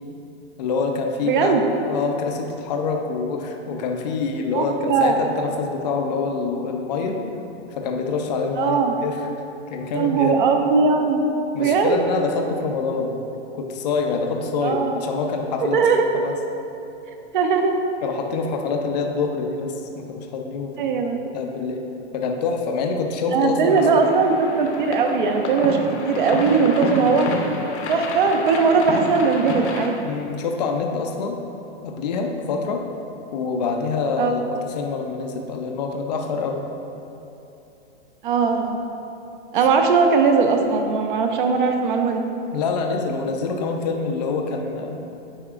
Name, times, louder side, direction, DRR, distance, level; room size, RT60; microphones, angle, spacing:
voice 1, 0.6-7.2 7.7-9.2 9.7-10.4 11.5-13.2 13.5-15.8 16.1-16.3 18.0-20.9 21.3-21.8 22.1-24.1 30.0-31.4 31.8-32.8 33.3-36.6 42.5-45.0, left 4 dB, 40° left, 3 dB, 0.4 m, -26 dB
voice 2, 1.2-1.6 4.5-5.2 8.6-9.0 9.9-11.2 11.6-12.0 14.6-15.0 15.6-16.2 17.3-17.7 20.8-21.2 23.3-27.3 27.9-30.0 34.2-34.3 38.2-38.8 39.5-42.2, right 5 dB, 45° right, 5 dB, 0.6 m, -19 dB
sound 1, 23.7-29.9, left 3 dB, 75° left, 0.9 m, -30 dB
8.5 x 4.8 x 2.4 m, 2.9 s
hypercardioid pair, 165°, 34 cm